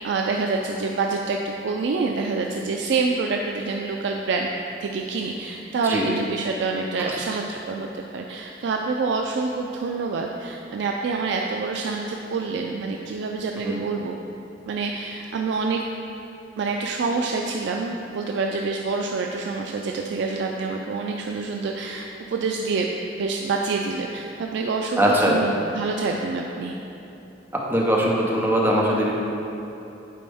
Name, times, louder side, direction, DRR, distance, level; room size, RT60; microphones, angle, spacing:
voice 1, 0.0-4.5 4.8-14.1 14.6-15.8 16.6-22.9 23.2-26.8, right 4 dB, 65° right, 1 dB, 0.3 m, -27 dB
voice 2, 25.0-25.4 27.7-29.1, equal, 10° right, -3 dB, 0.8 m, -20 dB
8.4 x 4.2 x 3.5 m, 2.9 s
head